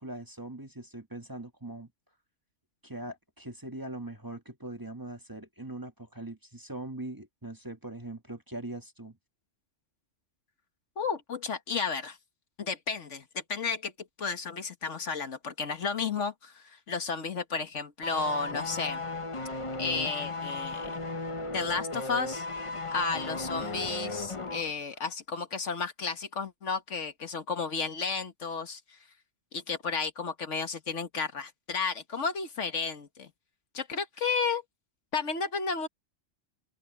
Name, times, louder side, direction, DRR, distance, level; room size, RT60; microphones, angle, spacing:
voice 1, 0.0-1.9 2.8-9.2, right 1 dB, 15° right, 1.4 m, -41 dB
voice 2, 11.0-12.2 12.6-13.9 14.2-19.0 19.8-21.0 21.5-22.5 22.9-28.8 29.5-33.3 33.7-34.6 35.1-35.9, left 5 dB, 75° left, 1.8 m, -32 dB
sound 1, 18.0-24.7 25.0-25.1, left 2 dB, 30° left, 0.9 m, -36 dB
open air
omnidirectional pair, 1.2 m